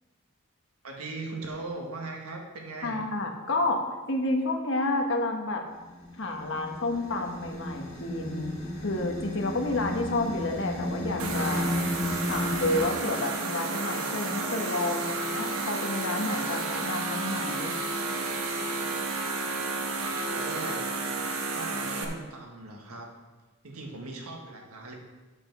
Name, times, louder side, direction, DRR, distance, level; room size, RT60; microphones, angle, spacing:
voice 1, 0.8-3.0 20.2-20.9 21.5-23.1 23.6-24.9, right 2 dB, 90° right, 1 dB, 1.7 m, -39 dB
voice 2, 2.8-5.6 6.2-8.5 8.8-11.7 12.3-17.7, left 2 dB, 55° left, 3 dB, 1.2 m, -30 dB
sound 1, 5.7-12.8, left 1 dB, 30° left, 2.2 m, -34 dB
sound 2, 11.2-22.0, right 3 dB, 70° right, 1.1 m, -31 dB
7.4 x 6.9 x 6.0 m, 1.2 s
head